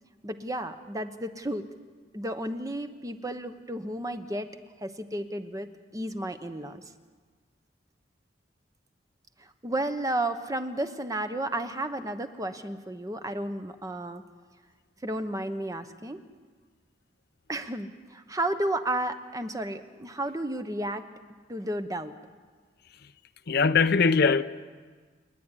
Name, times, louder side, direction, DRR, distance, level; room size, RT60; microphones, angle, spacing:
voice 1, 0.2-1.7 2.1-4.5 4.8-6.8 9.4-14.2 15.0-16.2 17.5-21.0 21.5-22.1, right 1 dB, 20° right, 1.0 m, -32 dB
voice 2, 23.5-24.4, left 5 dB, 60° left, 0.6 m, -21 dB
29.5 x 9.9 x 9.9 m
head